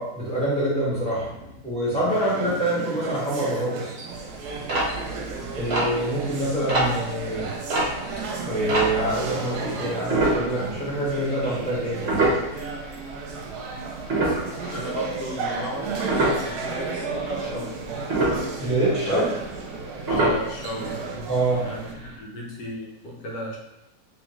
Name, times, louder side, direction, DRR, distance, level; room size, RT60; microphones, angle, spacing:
voice 1, 0.0-1.3 1.6-4.0 5.6-7.5 8.5-12.2 18.6-19.3 21.3-21.7, right 1 dB, 5° left, -8 dB, 1.2 m, -25 dB
voice 2, 1.2-1.7 2.0-2.4 14.6-17.7 19.1-19.4 20.1-23.6, equal, 80° left, -2 dB, 1.5 m, -35 dB
sound 1, 2.1-21.9, right 4 dB, 70° right, 1.1 m, -34 dB
sound 2, 4.1-9.3 10.1-11.1 11.4-11.6 12.0-13.3 13.7-16.6 17.0-17.5 17.8-19.8 20.1-20.9 21.2-21.3 21.5-21.7 22.1-22.2, right 2 dB, 45° right, 0.9 m, -25 dB
3.6 x 3.2 x 3.1 m, 0.92 s
omnidirectional pair, 1.8 m